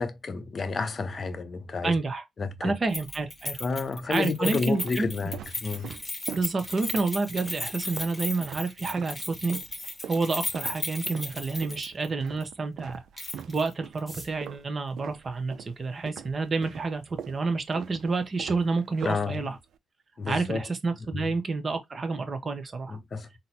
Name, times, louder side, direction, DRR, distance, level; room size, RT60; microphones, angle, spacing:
voice 1, 0.0-2.0 2.4-2.7 3.6-5.9 19.0-19.5 20.2-20.7 21.1-21.3 22.9-23.3, left 4 dB, 40° left, 0.6 m, -30 dB
voice 2, 1.8-2.2 2.6-3.6 4.1-5.1 6.3-9.6 10.1-13.0 13.5-19.6 20.3-23.0, right 3 dB, 35° right, 0.7 m, -29 dB
sound 1, 2.7-3.4 4.1-9.2 9.5-15.8 16.1-19.8, right 8 dB, 70° right, 0.3 m, -43 dB
Keys jangling, 2.9-12.1 12.4-12.5 13.2-13.7 14.0-14.1, left 2 dB, 15° left, 0.9 m, -36 dB
sound 2, 13.9-16.1 16.9-17.0 17.3-17.4 17.6-18.1 18.4-18.5 18.7-19.1 19.5-19.6 20.0-20.3, right 1 dB, 5° right, 1.3 m, -50 dB
3.9 x 2.0 x 2.8 m
cardioid pair, 90°, 0 cm